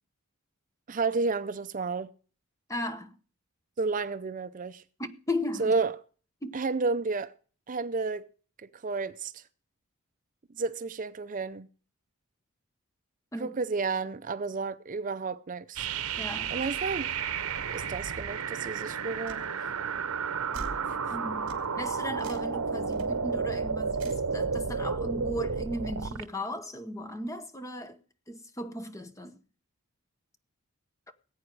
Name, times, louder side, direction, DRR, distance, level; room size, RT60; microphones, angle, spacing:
voice 1, 0.9-2.1 3.8-4.8 5.6-5.9 6.5-7.3 7.7-8.3 8.6-9.4 10.6-11.7 13.4-15.9 16.5-17.1 17.7-19.5 20.8-21.2, right 4 dB, 35° right, 0.5 m, -31 dB
voice 2, 2.7-3.2 5.0-5.8 6.4-6.6 13.3-13.6 16.2-16.5 21.1-28.0 28.3-29.4, left 1 dB, 15° left, 1.0 m, -36 dB
sound 1, 15.8-26.2, right 5 dB, 80° right, 0.9 m, -32 dB
sound 2, 19.3-19.4 20.5-20.8 21.5-21.6 22.2-22.5 22.9-23.1 24.0-24.3, right 2 dB, 60° right, 2.9 m, -43 dB
19.5 x 8.8 x 4.7 m
head